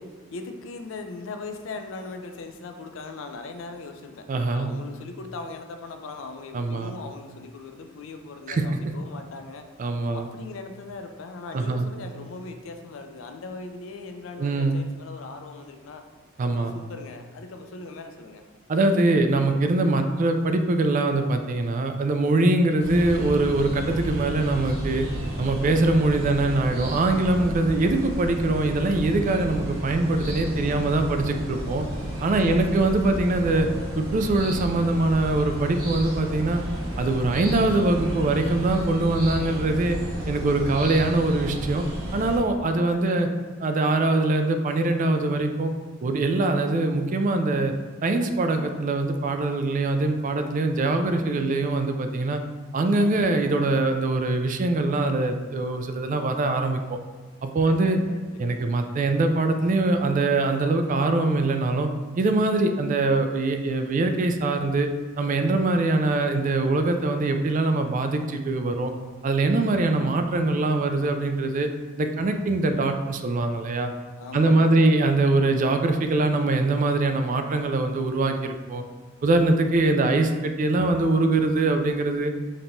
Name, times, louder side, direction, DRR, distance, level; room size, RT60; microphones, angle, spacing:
voice 1, 0.0-4.3 4.5-9.7 10.1-16.0 16.5-18.4 30.5-30.9 32.3-33.2 42.5-43.3 57.7-58.7 74.2-74.9, left 3 dB, 75° left, 6 dB, 0.4 m, -40 dB
voice 2, 4.3-4.7 6.5-6.9 8.5-8.6 9.8-10.3 11.5-11.9 14.4-14.9 16.4-16.7 18.7-25.1 25.4-31.9 32.2-33.7 34.0-36.6 37.0-40.0 40.3-41.8 42.1-43.3 43.6-45.7 46.0-47.7 48.0-52.4 52.7-57.0 57.4-58.0 58.4-61.9 62.2-64.9 65.2-68.9 69.2-71.7 72.0-73.9 74.3-78.8 79.2-82.3, right 2 dB, 40° right, 6 dB, 0.3 m, -23 dB
sound 1, 22.8-42.4, right 1 dB, 85° right, 1.3 m, -32 dB
5.2 x 2.9 x 2.6 m, 1.3 s
head